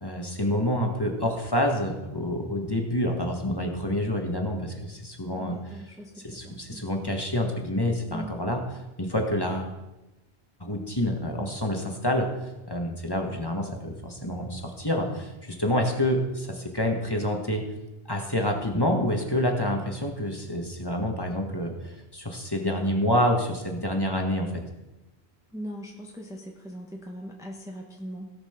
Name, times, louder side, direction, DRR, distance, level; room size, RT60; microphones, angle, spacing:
voice 1, 0.0-5.8 6.2-9.7 10.6-12.3 12.7-17.6 18.1-24.5, left 1 dB, 20° left, 1 dB, 1.6 m, -27 dB
voice 2, 5.3-6.9 8.1-8.4 25.5-28.3, equal, 5° right, 0 dB, 1.1 m, -40 dB
17.5 x 5.9 x 5.9 m, 1.0 s
omnidirectional pair, 1.1 m